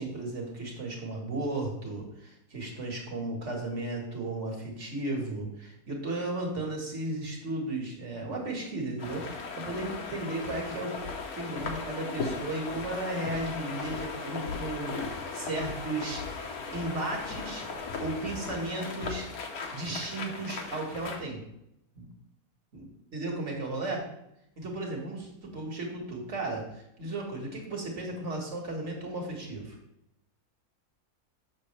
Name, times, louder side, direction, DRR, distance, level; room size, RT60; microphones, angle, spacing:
voice 1, 0.0-11.0 11.4-14.9 15.3-16.2 16.7-19.3 19.7-21.4 22.0-22.1 22.7-22.8 23.1-24.1 24.6-29.8, right 2 dB, 50° right, 0 dB, 1.9 m, -35 dB
sound 1, 9.0-21.2, left 4 dB, 75° left, 1.5 m, -37 dB
7.4 x 6.2 x 3.3 m, 0.80 s
omnidirectional pair, 1.6 m